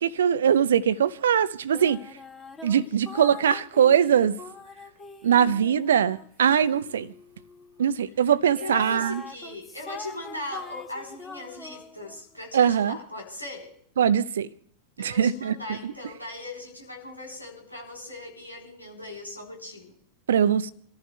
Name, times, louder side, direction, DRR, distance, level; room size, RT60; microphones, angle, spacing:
voice 1, 0.0-2.0 2.6-4.4 5.2-7.1 7.8-9.2 12.5-13.0 14.0-14.5 15.2-15.5 20.3-20.7, right 8 dB, 65° right, 0.7 m, -21 dB
sound 1, 1.7-8.0 8.5-12.2, left 3 dB, 15° left, 1.6 m, -44 dB
voice 2, 2.8-3.5 8.6-13.7 15.0-20.0, left 2 dB, 85° left, 3.7 m, -39 dB
29.0 x 14.5 x 2.3 m
figure-of-eight pair, 90°, 0 cm